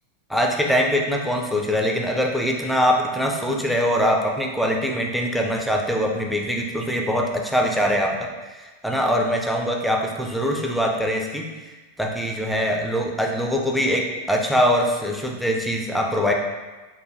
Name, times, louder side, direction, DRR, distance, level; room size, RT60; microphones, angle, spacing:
voice 1, 0.3-16.3, equal, ahead, 0 dB, 0.5 m, -23 dB
4.6 x 2.3 x 3.1 m, 1.2 s
figure-of-eight pair, 90°, 0 cm